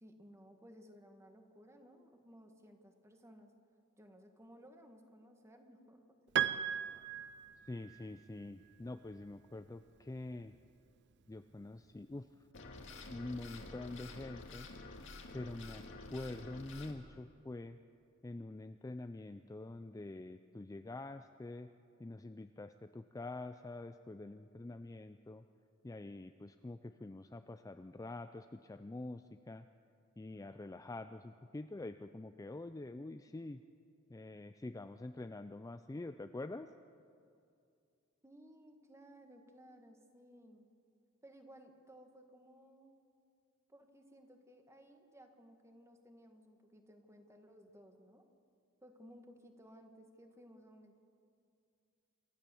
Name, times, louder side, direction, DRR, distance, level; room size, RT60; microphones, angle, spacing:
voice 1, 0.0-3.5 4.0-6.0 38.2-40.7 41.2-42.9 43.7-48.2 48.8-51.0, equal, 15° right, 5 dB, 1.6 m, -59 dB
Piano, 6.4-8.0, right 10 dB, 55° right, 0.5 m, -36 dB
voice 2, 7.6-10.5 11.3-12.3 13.1-14.7 15.3-15.8 16.1-17.8 18.2-21.7 22.0-25.4 25.8-29.7 30.2-33.6 34.1-36.7, left 2 dB, 15° left, 9 dB, 0.4 m, -46 dB
sound 1, 12.5-16.9, left 2 dB, 65° left, 2.0 m, -50 dB
28.0 x 13.5 x 7.0 m, 2.5 s
head